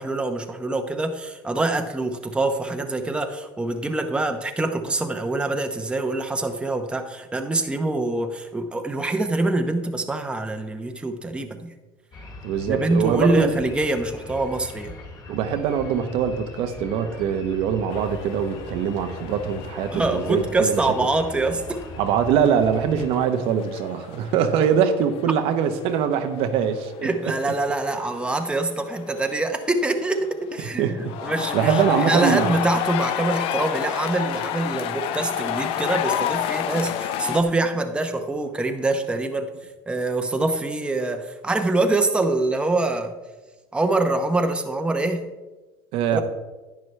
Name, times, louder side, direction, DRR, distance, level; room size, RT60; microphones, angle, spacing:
voice 1, 0.0-11.7 12.7-14.9 19.9-21.8 27.0-39.5 39.9-43.2 43.7-45.3 46.1-46.2, right 2 dB, 10° right, 5 dB, 0.8 m, -25 dB
sound 1, 12.1-23.2, left 2 dB, 40° left, 2.3 m, -41 dB
voice 2, 12.4-13.5 15.3-20.8 22.0-27.1 30.8-32.5 45.9-46.2, right 8 dB, 65° right, 8 dB, 0.9 m, -23 dB
sound 2, 17.9-37.4, left 11 dB, 65° left, 0.6 m, -31 dB
10.5 x 9.5 x 3.3 m, 1.2 s
supercardioid pair, 115°, 10 cm